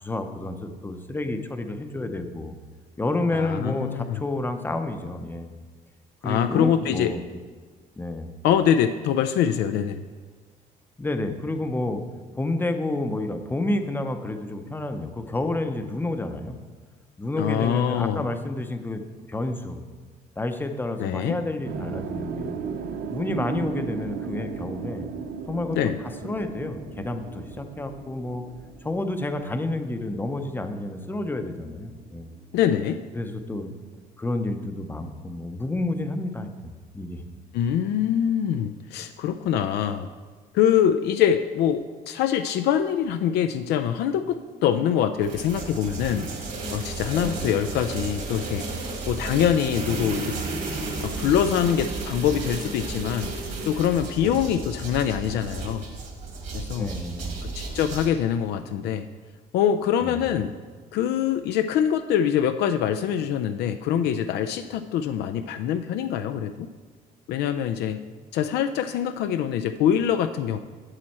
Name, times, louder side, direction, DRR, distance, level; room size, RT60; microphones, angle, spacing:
voice 1, 0.0-2.5 3.0-5.5 6.2-7.3 8.0-8.3 11.0-12.0 12.4-16.5 17.2-19.0 19.3-19.8 20.4-22.6 23.1-25.1 25.5-25.9 26.2-28.4 28.8-32.3 33.1-33.7 34.2-36.5 36.9-37.2 47.2-47.7 54.2-54.4 56.8-57.3 60.0-60.2, left 2 dB, 10° left, 7 dB, 0.6 m, -30 dB
voice 2, 3.3-4.2 6.2-7.1 8.4-10.0 17.4-18.3 21.0-21.4 25.7-26.0 32.5-33.0 37.5-40.1 40.5-46.3 46.7-48.6 49.1-50.3 51.0-53.3 53.7-55.8 56.5-56.9 57.6-59.1 59.5-60.5 60.9-66.7 67.3-68.0 68.3-70.6, left 9 dB, 80° left, 8 dB, 0.4 m, -24 dB
sound 1, 21.6-31.8 32.0-33.7, right 6 dB, 65° right, 0.5 m, -36 dB
sound 2, 45.2-58.1, right 3 dB, 50° right, 1.7 m, -33 dB
7.7 x 7.5 x 4.2 m, 1.5 s
cardioid pair, 110°, 17 cm